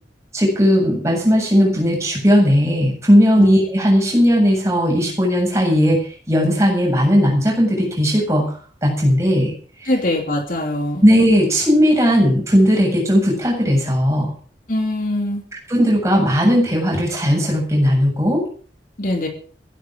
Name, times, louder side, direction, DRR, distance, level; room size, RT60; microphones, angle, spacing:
voice 1, 0.3-8.5 8.8-9.5 9.8-9.9 11.0-14.3 15.7-18.5, equal, 15° right, 0 dB, 7.5 m, -16 dB
voice 2, 9.9-11.0 14.7-15.4 19.0-19.3, left 1 dB, 50° left, 3 dB, 3.0 m, -22 dB
15.5 x 12.0 x 6.4 m, 0.43 s
head